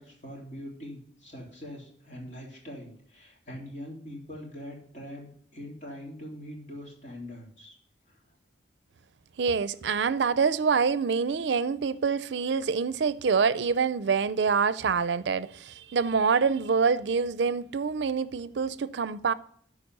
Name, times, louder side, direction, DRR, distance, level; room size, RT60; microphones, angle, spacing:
voice 1, 0.0-7.8 8.1-8.2, equal, 45° left, 3.5 m, -43 dB
voice 2, 9.4-19.3, right 5 dB, 75° right, 0.5 m, -26 dB
13.0 x 5.0 x 5.4 m
head